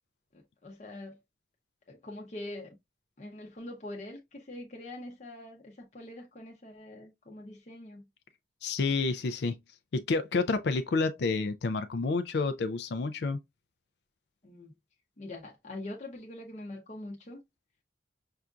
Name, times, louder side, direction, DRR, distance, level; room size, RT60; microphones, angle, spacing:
voice 1, 0.3-1.2 1.9-2.8 3.2-8.0 14.4-14.7 15.2-17.4, left 1 dB, 40° left, 0.7 m, -44 dB
voice 2, 8.6-9.6 9.9-13.4, left 3 dB, 65° left, 0.4 m, -29 dB
5.6 x 2.5 x 2.3 m
head